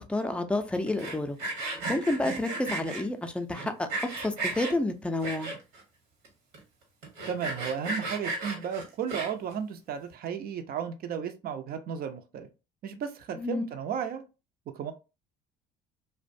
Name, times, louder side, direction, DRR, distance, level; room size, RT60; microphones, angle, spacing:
voice 1, 0.0-5.5 13.4-13.7, left 2 dB, 5° left, 7 dB, 0.4 m, -30 dB
Sawing, 0.9-3.0 3.5-4.7 5.2-5.8 6.2-6.3 6.5-6.6 7.0-9.5, right 2 dB, 75° right, 1.1 m, -34 dB
voice 2, 7.3-12.5 12.8-14.3 14.7-14.9, right 7 dB, 50° right, 9 dB, 0.5 m, -34 dB
2.5 x 2.1 x 2.5 m, 0.29 s
hypercardioid pair, 70°, 20 cm